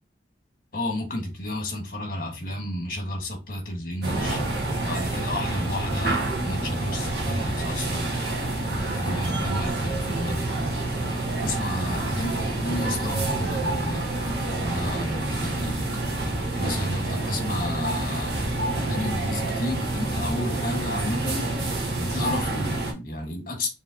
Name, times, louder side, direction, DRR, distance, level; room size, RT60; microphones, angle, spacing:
voice 1, 0.7-4.4 4.8-8.1 8.7-10.5 11.4-14.1 14.6-15.8 16.6-18.3 18.7-21.5 22.0-23.7, left 1 dB, 50° left, 1.4 m, -31 dB
sound 1, 4.0-22.9, right 2 dB, 60° right, 1.4 m, -28 dB
4.9 x 3.3 x 2.7 m
head